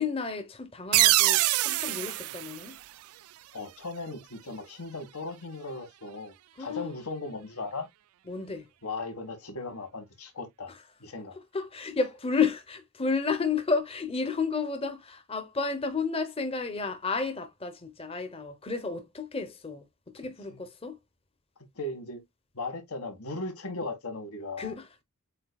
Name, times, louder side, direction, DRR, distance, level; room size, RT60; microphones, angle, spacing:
voice 1, 0.0-2.8 6.6-6.9 8.3-8.7 10.7-10.8 11.5-19.8 20.1-21.0 24.6-25.0, left 4 dB, 25° left, 0.8 m, -31 dB
sound 1, 0.9-3.5, right 18 dB, 75° right, 0.3 m, -25 dB
voice 2, 3.5-6.3 6.6-7.9 8.8-10.7 11.0-11.4 20.5-20.6 21.8-22.2 22.5-24.7, left 2 dB, 85° left, 1.8 m, -37 dB
7.7 x 2.8 x 2.3 m
head